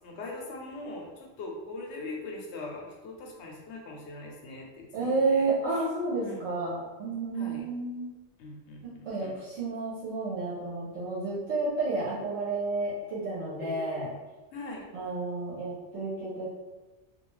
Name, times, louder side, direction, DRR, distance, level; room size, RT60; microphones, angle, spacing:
voice 1, 0.0-5.9 6.2-6.4 7.3-7.7 8.4-9.3 13.6-14.0 14.5-14.9, left 2 dB, 70° left, -1 dB, 0.8 m, -41 dB
voice 2, 4.9-8.1 8.8-14.1 14.9-16.5, right 3 dB, 80° right, -8 dB, 1.0 m, -31 dB
2.3 x 2.3 x 3.1 m, 1.2 s
omnidirectional pair, 1.2 m